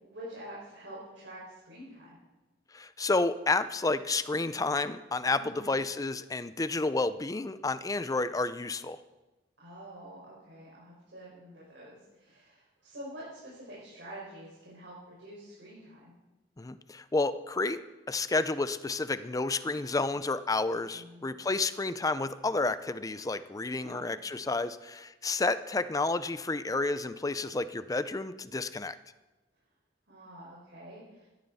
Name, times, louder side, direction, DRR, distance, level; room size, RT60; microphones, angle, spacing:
voice 1, 0.0-2.2 5.3-5.7 9.6-16.1 20.9-21.2 23.8-24.1 30.1-31.3, right 1 dB, 90° right, -7 dB, 5.4 m, -47 dB
voice 2, 2.7-9.0 16.6-17.8 18.1-29.0, left 3 dB, 20° left, 14 dB, 0.5 m, -30 dB
17.5 x 12.5 x 4.2 m, 1.1 s
head